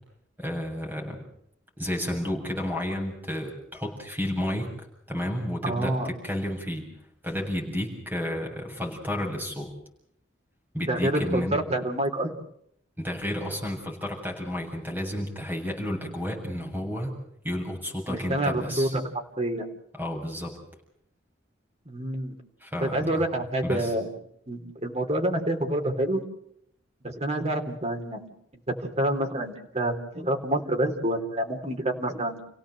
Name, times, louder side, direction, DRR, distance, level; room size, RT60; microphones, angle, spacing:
voice 1, 0.4-1.2 1.8-4.7 5.1-6.9 7.2-9.7 10.7-11.6 13.0-17.1 17.4-19.0 20.0-20.5 22.6-23.2 23.6-23.9, left 1 dB, 10° right, 1 dB, 7.3 m, -31 dB
voice 2, 5.6-6.1 10.8-12.4 18.1-19.0 19.4-19.7 21.9-22.4 22.8-24.1 24.5-26.2 27.0-28.3 28.8-32.5, right 1 dB, 35° right, 4 dB, 3.5 m, -27 dB
29.5 x 17.0 x 7.8 m, 0.73 s
head